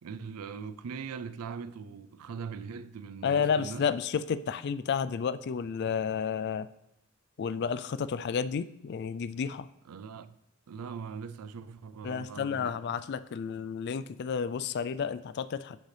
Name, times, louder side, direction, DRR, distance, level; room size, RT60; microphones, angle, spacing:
voice 1, 0.0-3.9 9.9-10.4 10.7-13.0, right 6 dB, 90° right, 0.4 m, -41 dB
voice 2, 3.2-6.7 7.4-9.7 12.0-15.8, left 6 dB, 50° left, 0.3 m, -31 dB
10.0 x 6.5 x 3.3 m
head